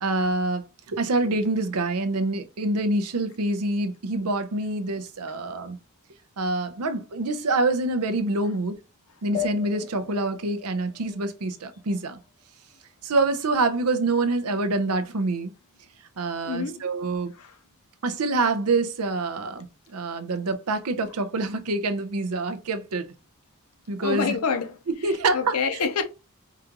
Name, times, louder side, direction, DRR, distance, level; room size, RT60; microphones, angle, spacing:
voice 1, 0.0-5.8 6.4-8.8 9.2-12.2 13.0-15.5 16.2-17.3 18.0-19.7 19.9-23.1 23.9-24.3 24.9-25.6, right 2 dB, 80° right, 0.7 m, -26 dB
sound 1, 9.3-12.3, left 8 dB, 25° left, 0.5 m, -37 dB
voice 2, 16.4-16.8 17.3-17.6 24.0-24.8 25.0-26.0, left 5 dB, 80° left, 0.7 m, -27 dB
4.9 x 2.5 x 2.9 m
head